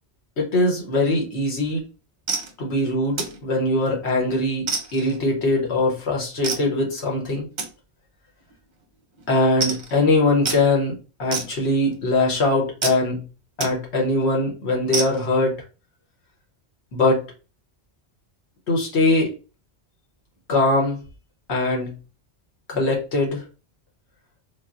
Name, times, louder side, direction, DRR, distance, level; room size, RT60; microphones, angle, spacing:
voice 1, 0.4-1.8 2.6-7.5 9.3-13.2 13.6-15.6 16.9-17.2 18.7-19.3 20.5-21.0 21.5-22.0 22.7-23.4, left 2 dB, 70° left, -1 dB, 1.3 m, -21 dB
sound 1, 1.7-1.9 2.3-2.5 3.2-3.4 3.9-4.2 4.7-5.2 6.4-6.7 7.6-7.7 8.4-8.5 8.8-8.9 9.2-9.3 9.6-9.9 10.5-10.6 11.3-11.9 12.8-13.0 13.6-13.7 14.1-14.3 14.9-15.3, right 4 dB, 50° right, 0.7 m, -28 dB
3.9 x 2.1 x 2.4 m, 0.34 s
omnidirectional pair, 1.1 m